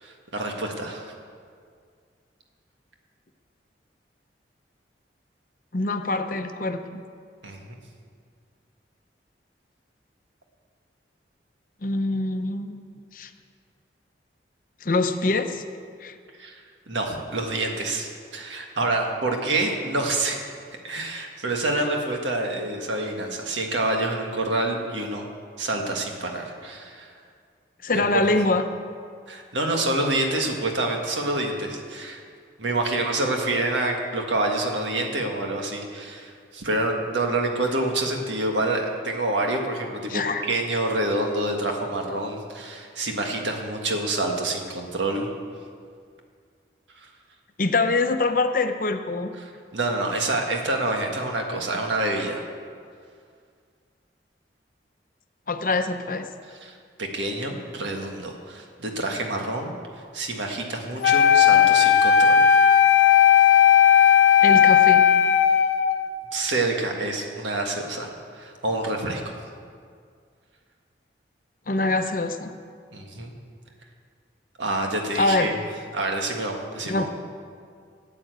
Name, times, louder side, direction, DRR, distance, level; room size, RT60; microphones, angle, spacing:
voice 1, 0.0-1.1 7.4-7.7 16.4-16.6 16.9-20.4 20.8-25.2 25.6-27.1 27.9-28.2 29.3-32.2 32.6-45.3 49.4-52.4 56.6-56.7 57.0-59.7 60.1-62.6 66.3-69.4 72.9-73.3 74.6-75.6 75.9-77.1, right 2 dB, 90° right, 2 dB, 1.7 m, -27 dB
voice 2, 5.7-7.0 11.8-12.8 13.1-13.3 14.8-15.6 16.0-16.1 27.8-28.6 40.1-40.5 47.6-49.3 55.5-56.3 64.4-65.1 71.7-72.5 75.1-75.5 76.8-77.1, left 2 dB, 50° left, 7 dB, 0.7 m, -24 dB
Wind instrument woodwind instrument, 61.0-66.1, left 8 dB, 90° left, 0.8 m, -16 dB
13.0 x 8.6 x 8.1 m, 2.2 s
head